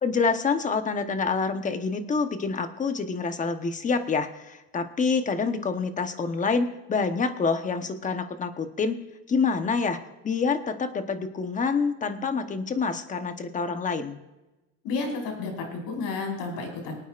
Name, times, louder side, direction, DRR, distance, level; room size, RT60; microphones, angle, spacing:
voice 1, 0.0-9.0 9.3-10.0 10.2-14.2, left 4 dB, 20° left, 8 dB, 1.1 m, -27 dB
voice 2, 14.8-17.0, left 4 dB, 70° left, 1 dB, 4.9 m, -31 dB
24.0 x 9.2 x 2.5 m, 1.0 s
cardioid pair, 135°, 36 cm